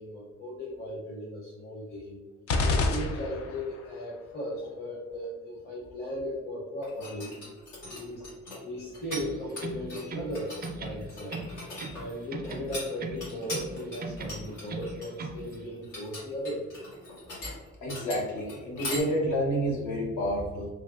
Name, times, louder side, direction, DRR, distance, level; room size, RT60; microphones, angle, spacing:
voice 1, 0.0-2.2 2.6-7.3 7.9-8.2 8.6-11.4 11.9-16.7, left 1 dB, 35° left, -5 dB, 0.8 m, -37 dB
sound 1, 2.5-3.8, left 3 dB, 50° left, 0.4 m, -27 dB
sound 2, 6.8-9.2 9.5-19.0, left 1 dB, 90° left, 1.4 m, -40 dB
sound 3, 9.0-10.4 10.6-12.0 12.3-13.7 14.0-15.4, right 3 dB, 35° right, 0.4 m, -38 dB
voice 2, 17.8-20.7, equal, 70° left, -2 dB, 0.9 m, -29 dB
3.2 x 2.2 x 2.4 m, 1.3 s
cardioid pair, 90°, 30 cm